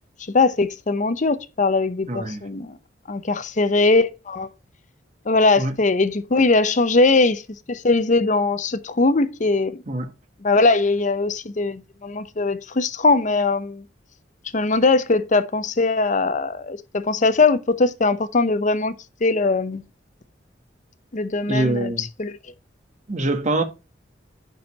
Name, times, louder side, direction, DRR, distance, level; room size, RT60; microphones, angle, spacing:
voice 1, 0.3-2.8 3.1-4.5 5.3-7.4 7.7-9.8 10.4-13.8 14.5-18.9 19.2-19.8 21.1-22.4, left 3 dB, 45° left, 0.7 m, -20 dB
voice 2, 2.1-2.4 5.6-5.7 9.9-10.1 21.5-22.0 23.1-23.6, right 2 dB, 40° right, 1.3 m, -24 dB
6.4 x 5.3 x 5.3 m
head